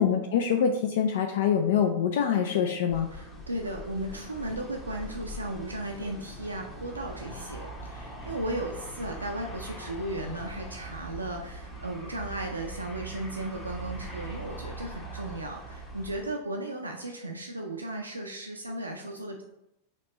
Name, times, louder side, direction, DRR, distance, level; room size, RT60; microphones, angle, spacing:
voice 1, 0.0-3.1, left 7 dB, 55° left, 5 dB, 0.3 m, -25 dB
sound 1, 2.9-16.3, right 1 dB, 15° left, 0.9 m, -41 dB
voice 2, 3.1-19.4, right 1 dB, 80° right, 2 dB, 0.4 m, -36 dB
4.4 x 2.9 x 3.9 m, 0.85 s
figure-of-eight pair, 90°, 0 cm